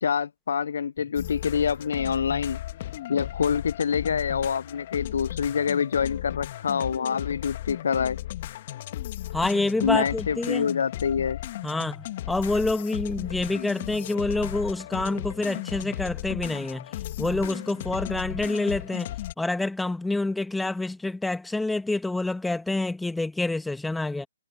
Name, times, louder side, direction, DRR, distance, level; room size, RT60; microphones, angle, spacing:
voice 1, 0.0-2.6 3.1-8.2 9.8-11.4, left 7 dB, 65° left, 0.5 m, -26 dB
sound 1, 1.2-19.3, left 14 dB, 40° left, 2.0 m, -35 dB
voice 2, 9.3-10.7 11.6-16.9 17.2-24.3, left 2 dB, 5° left, 1.8 m, -27 dB
figure-of-eight pair, 135°, 0 cm